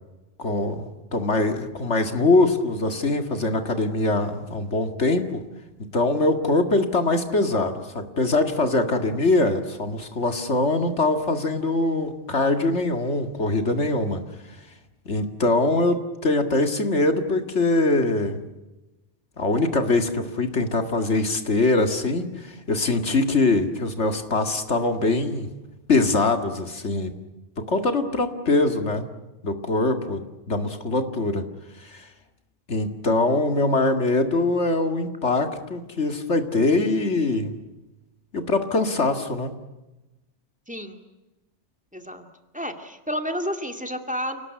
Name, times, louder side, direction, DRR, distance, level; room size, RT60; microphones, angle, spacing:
voice 1, 0.4-5.4 5.9-14.2 15.1-18.4 19.4-25.5 25.9-27.1 27.7-29.0 29.4-31.4 31.8-32.1 32.7-37.5 38.3-39.5, left 2 dB, 70° left, 7 dB, 2.4 m, -23 dB
voice 2, 40.7-41.0 41.9-42.3 42.5-44.5, equal, 5° right, 6 dB, 2.3 m, -30 dB
29.0 x 19.0 x 9.6 m, 1.1 s
omnidirectional pair, 1.2 m